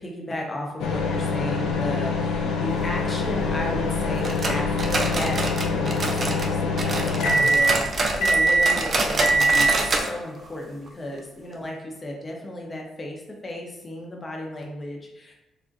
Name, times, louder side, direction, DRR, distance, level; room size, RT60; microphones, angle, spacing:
voice 1, 0.0-15.3, left 1 dB, 25° left, 0 dB, 0.7 m, -34 dB
sound 1, 0.8-10.0, equal, 80° left, 0.4 m, -24 dB
sound 2, 4.2-6.5 6.8-10.1 10.4-10.5 10.9-11.0 11.5-11.6, right 2 dB, 40° right, 0.4 m, -27 dB
3.7 x 2.1 x 2.6 m, 0.97 s
cardioid pair, 90°, 0 cm